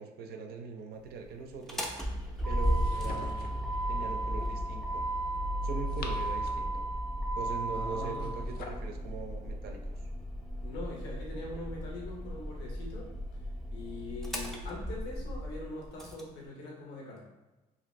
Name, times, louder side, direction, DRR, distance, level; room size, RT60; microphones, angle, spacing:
voice 1, 0.0-1.9 2.5-3.6 3.9-5.0 5.6-6.9 7.4-10.0, right 5 dB, 70° right, 4 dB, 0.4 m, -41 dB
Motor vehicle (road), 1.5-16.2, right 1 dB, ahead, 0.4 m, -34 dB
sound 1, 2.6-3.7 5.6-6.8 8.0-8.9, left 4 dB, 60° left, 0.4 m, -45 dB
voice 2, 7.7-8.3 10.6-13.1 13.7-17.2, left 2 dB, 85° left, -2 dB, 0.8 m, -42 dB
2.7 x 2.5 x 3.1 m, 1.1 s
cardioid pair, 110°, 17 cm